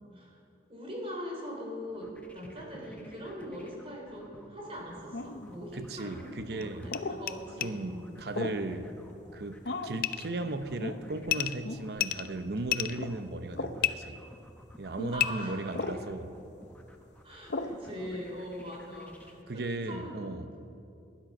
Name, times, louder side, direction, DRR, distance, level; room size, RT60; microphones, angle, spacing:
voice 1, 0.7-8.1 15.1-15.6 17.2-20.3, equal, 30° right, -1 dB, 3.3 m, -42 dB
sound 1, 1.9-19.3, left 1 dB, 10° left, 1.1 m, -54 dB
sound 2, 5.1-5.5 6.9-7.2 8.3-8.7 9.6-10.0 10.8-11.0 11.6-11.9 12.9-13.1 13.5-13.8 15.0-15.1 15.7-16.0 17.5-17.8, left 2 dB, 75° left, 0.8 m, -36 dB
voice 2, 5.7-6.9 7.6-9.0 9.3-14.2 14.8-16.3 19.5-20.5, right 2 dB, 60° right, 10 dB, 0.8 m, -36 dB
sound 3, 6.6-6.7 6.9-7.0 7.3-7.4 7.6-7.7 10.0-10.3 11.3-11.6 11.9-13.0 13.8-13.9 15.1-15.3, left 12 dB, 55° left, 0.4 m, -29 dB
19.5 x 10.5 x 5.3 m, 2.7 s
head